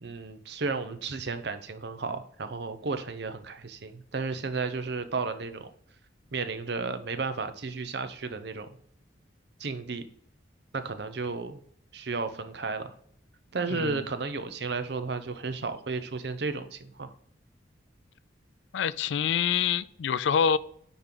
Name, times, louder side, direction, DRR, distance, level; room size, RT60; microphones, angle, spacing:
voice 1, 0.0-5.7 6.3-8.7 9.6-10.0 10.7-11.6 11.9-12.9 13.5-17.1, right 4 dB, 60° right, 10 dB, 0.6 m, -33 dB
voice 2, 13.7-14.0 18.7-20.6, left 7 dB, 70° left, 17 dB, 0.3 m, -26 dB
10.0 x 3.7 x 3.8 m, 0.67 s
head